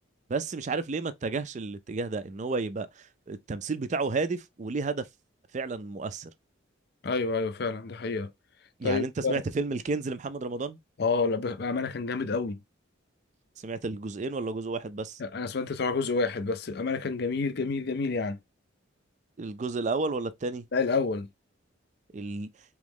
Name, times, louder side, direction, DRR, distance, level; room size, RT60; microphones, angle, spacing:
voice 1, 0.3-5.1 5.5-6.3 8.8-10.8 13.6-15.2 19.4-20.7 22.1-22.5, right 3 dB, 35° right, 0.4 m, -32 dB
voice 2, 7.0-8.3 8.8-9.3 11.0-12.6 15.2-18.4 20.7-21.3, left 4 dB, 55° left, 0.5 m, -29 dB
3.6 x 3.0 x 3.5 m
head